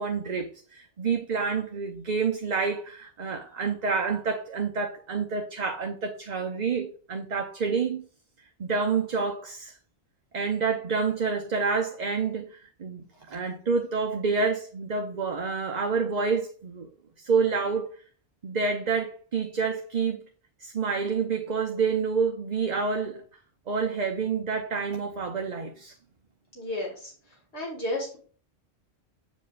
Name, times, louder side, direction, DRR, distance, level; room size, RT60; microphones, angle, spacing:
voice 1, 0.0-8.0 8.6-9.7 10.3-16.9 17.2-17.9 18.4-20.2 20.6-23.2 23.7-25.9, right 5 dB, 45° right, 0.8 m, -28 dB
voice 2, 26.5-27.1 27.5-28.2, left 1 dB, 75° left, 2.3 m, -32 dB
8.5 x 5.1 x 2.4 m
omnidirectional pair, 1.1 m